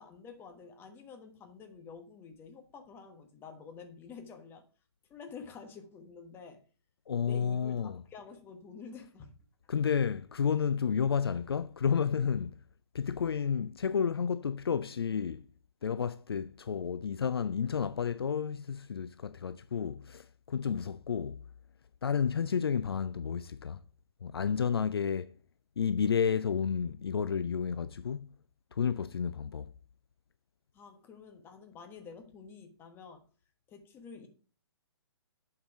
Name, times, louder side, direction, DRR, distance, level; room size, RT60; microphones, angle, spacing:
voice 1, 0.0-4.6 5.1-6.6 7.2-9.4 30.7-33.2 33.7-34.3, left 5 dB, 15° left, 1.2 m, -49 dB
voice 2, 7.1-8.0 9.7-12.6 12.9-15.4 15.8-21.5 22.0-23.8 24.2-25.3 25.8-28.4 28.7-29.7, left 7 dB, 65° left, 0.4 m, -31 dB
8.2 x 4.7 x 4.8 m
figure-of-eight pair, 125°, 14 cm